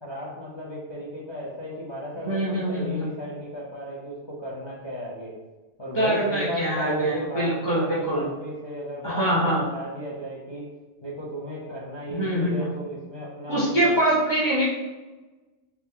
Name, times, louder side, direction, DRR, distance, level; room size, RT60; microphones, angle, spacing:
voice 1, 0.0-5.4 5.8-10.7 11.0-14.0, equal, 40° left, -6 dB, 0.4 m, -35 dB
voice 2, 2.2-3.0 5.9-8.2 9.0-9.6 12.1-12.5 13.5-14.7, right 1 dB, 40° right, -8 dB, 0.3 m, -24 dB
2.8 x 2.1 x 3.6 m, 1.2 s
omnidirectional pair, 1.2 m